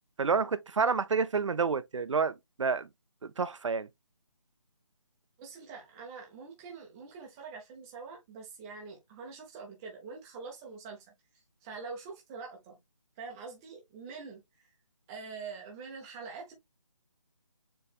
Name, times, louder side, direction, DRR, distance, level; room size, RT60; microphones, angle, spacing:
voice 1, 0.2-2.9 3.4-3.9, right 5 dB, 65° right, 0.6 m, -29 dB
voice 2, 5.4-12.8 13.2-14.7 15.1-16.5, right 4 dB, 10° right, 0.7 m, -45 dB
6.9 x 3.1 x 2.3 m
hypercardioid pair, 170°, 17 cm